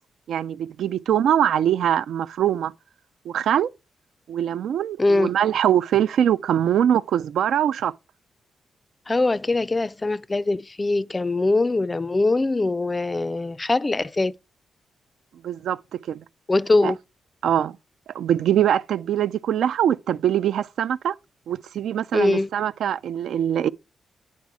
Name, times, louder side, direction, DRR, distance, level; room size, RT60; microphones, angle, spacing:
voice 1, 0.3-2.7 3.3-3.7 4.3-7.9 15.4-16.2 16.8-16.9 17.4-17.8 18.1-21.1 21.5-23.7, right 10 dB, 85° right, 0.4 m, -23 dB
voice 2, 5.0-5.3 9.1-14.3 16.5-17.0 22.1-22.5, left 2 dB, 25° left, 0.4 m, -22 dB
9.3 x 4.2 x 4.8 m
cardioid pair, 75°, 0 cm